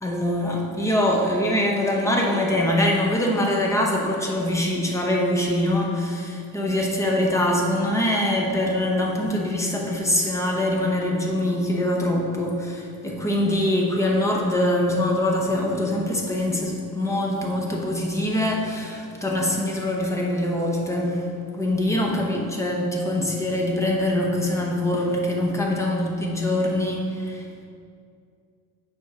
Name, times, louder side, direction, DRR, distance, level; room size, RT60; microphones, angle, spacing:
voice 1, 0.0-21.3 21.6-27.6, left 1 dB, 10° left, -1 dB, 0.8 m, -23 dB
6.1 x 4.5 x 6.0 m, 2.4 s
cardioid pair, 155°, 36 cm